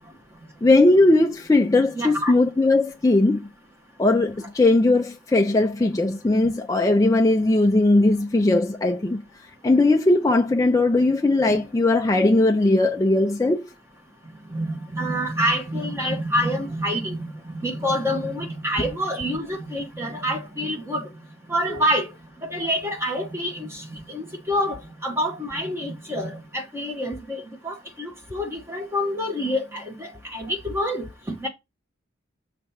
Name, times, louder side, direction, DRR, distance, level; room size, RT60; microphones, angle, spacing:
voice 1, 0.6-3.4 4.0-9.2 9.6-13.7, left 2 dB, 15° left, 0.3 m, -19 dB
voice 2, 1.9-2.3 11.5-11.6 14.5-14.6 14.9-17.2 17.6-21.0 21.5-22.1 22.5-23.7 24.1-24.8 25.0-31.1 31.4-31.5, equal, 10° right, 1.2 m, -27 dB
6.4 x 3.3 x 5.6 m
head